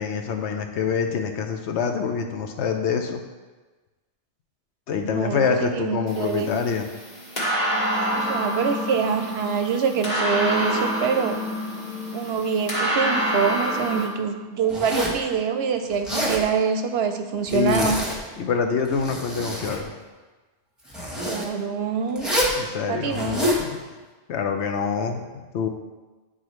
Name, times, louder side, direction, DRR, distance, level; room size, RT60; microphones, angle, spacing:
voice 1, 0.0-3.2 4.9-6.9 17.5-18.0 18.4-19.9 22.6-23.8 24.3-25.7, left 6 dB, 75° left, 4 dB, 1.0 m, -26 dB
voice 2, 5.0-6.5 8.1-11.4 12.1-18.0 21.2-22.3 22.9-23.5, right 6 dB, 70° right, 6 dB, 0.8 m, -25 dB
sound 1, 6.1-14.1, equal, 40° left, 1.5 m, -27 dB
Zipper (clothing), 14.7-15.2 15.9-16.4 17.5-18.2 18.8-19.8 20.9-21.5 22.2-22.6 23.1-23.6, equal, ahead, 1.1 m, -27 dB
9.8 x 4.0 x 3.1 m, 1.2 s
omnidirectional pair, 1.2 m